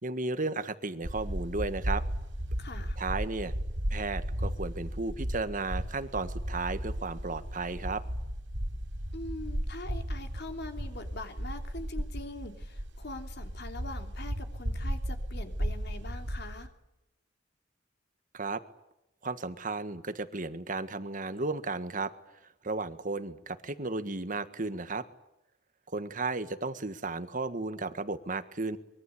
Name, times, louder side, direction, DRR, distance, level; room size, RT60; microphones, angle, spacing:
voice 1, 0.0-2.0 3.0-3.5 3.9-8.0 18.3-18.6 19.2-22.1 22.6-25.1 25.9-28.8, right 3 dB, 45° right, 11 dB, 1.6 m, -34 dB
sound 1, 1.0-16.7, equal, 85° right, 4.7 m, -35 dB
voice 2, 2.6-3.0 9.1-16.7, left 2 dB, 60° left, 5 dB, 3.3 m, -43 dB
24.5 x 22.5 x 8.5 m, 0.89 s
head